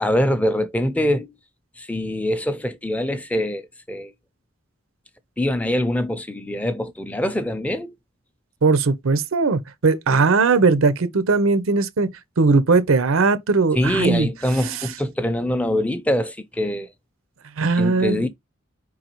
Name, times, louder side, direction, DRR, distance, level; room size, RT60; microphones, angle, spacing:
voice 1, 0.0-1.3 1.8-4.1 5.4-7.9 13.8-16.9 17.8-18.3, left 1 dB, 5° left, 0.4 m, -24 dB
voice 2, 8.6-12.1 12.4-14.3 17.6-18.3, right 4 dB, 85° right, 0.6 m, -19 dB
4.7 x 3.8 x 2.9 m
head